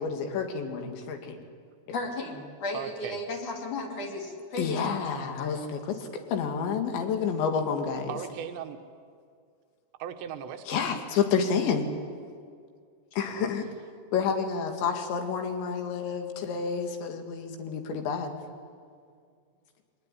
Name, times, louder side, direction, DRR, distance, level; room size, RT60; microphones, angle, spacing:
voice 1, 0.0-1.4 4.6-6.0 6.3-8.2 10.7-11.9 13.1-13.7 14.1-18.4, left 6 dB, 85° left, 5 dB, 4.4 m, -29 dB
voice 2, 1.9-5.7, left 2 dB, 50° left, 1 dB, 3.8 m, -35 dB
voice 3, 2.7-3.2 8.1-8.8 10.0-10.9 13.3-13.5, right 9 dB, 80° right, 7 dB, 3.6 m, -38 dB
24.5 x 19.0 x 10.0 m, 2.1 s
omnidirectional pair, 5.1 m